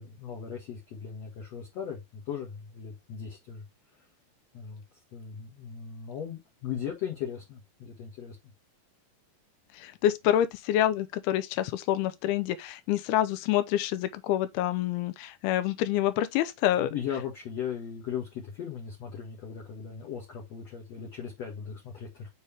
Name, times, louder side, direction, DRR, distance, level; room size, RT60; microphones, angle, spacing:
voice 1, 0.0-3.6 4.5-4.8 5.1-8.4 16.8-22.3, left 8 dB, 55° left, 2.0 m, -38 dB
voice 2, 9.7-16.9, left 12 dB, 90° left, 2.2 m, -27 dB
7.0 x 4.1 x 3.4 m
omnidirectional pair, 5.1 m